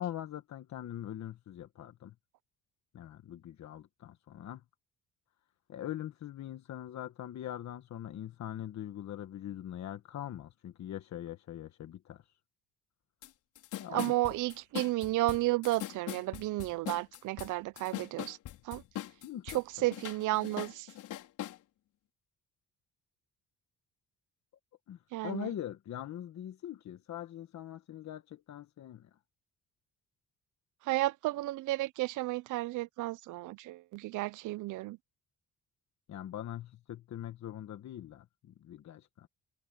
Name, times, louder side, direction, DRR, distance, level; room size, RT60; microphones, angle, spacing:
voice 1, 0.0-2.1 2.9-4.6 5.7-12.2 13.8-14.1 19.2-19.9 24.9-29.1 36.1-39.3, left 11 dB, 65° left, 1.4 m, -42 dB
sound 1, 13.2-13.3 13.6-19.6 19.9-21.6, left 13 dB, 85° left, 4.3 m, -41 dB
voice 2, 13.9-18.4 18.7-18.8 19.5-20.9 25.1-25.5 30.9-35.0, right 18 dB, 85° right, 0.6 m, -32 dB
cardioid pair, 90°, 30 cm